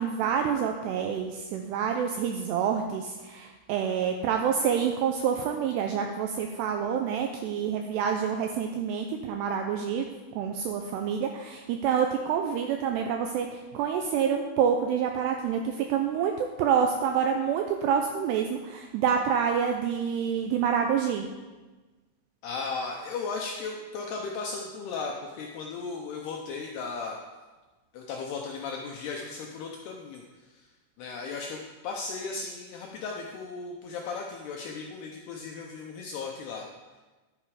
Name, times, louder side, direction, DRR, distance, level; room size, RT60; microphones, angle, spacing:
voice 1, 0.0-10.1 10.4-21.3, right 7 dB, 90° right, 4 dB, 2.4 m, -27 dB
voice 2, 22.4-27.2 27.9-30.7 31.0-36.7, left 4 dB, 80° left, 0 dB, 2.4 m, -36 dB
11.0 x 9.2 x 4.9 m, 1.2 s
omnidirectional pair, 5.6 m